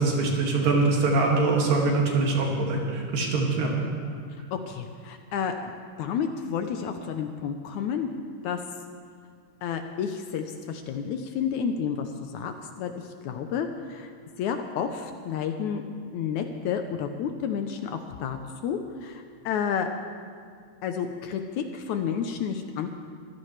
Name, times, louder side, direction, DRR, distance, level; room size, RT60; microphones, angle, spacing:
voice 1, 0.0-3.7, right 3 dB, 80° right, -1 dB, 3.9 m, -23 dB
voice 2, 4.5-5.7 6.0-8.1 8.4-8.6 9.6-12.9 13.2-14.1 14.4-15.8 16.1-19.9 20.8-22.9, left 7 dB, 75° left, 6 dB, 1.9 m, -30 dB
24.5 x 15.0 x 3.3 m, 2.1 s
omnidirectional pair, 3.9 m